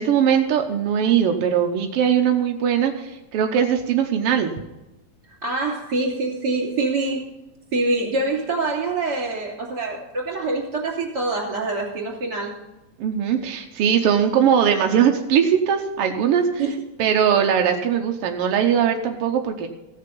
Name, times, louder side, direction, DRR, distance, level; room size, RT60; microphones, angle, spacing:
voice 1, 0.0-4.5 13.0-16.5 17.0-19.7, right 8 dB, 80° right, 4 dB, 1.3 m, -20 dB
voice 2, 5.3-7.3 7.7-12.5 16.6-16.7, right 3 dB, 35° right, -2 dB, 3.3 m, -25 dB
15.5 x 6.7 x 5.3 m, 0.96 s
omnidirectional pair, 3.7 m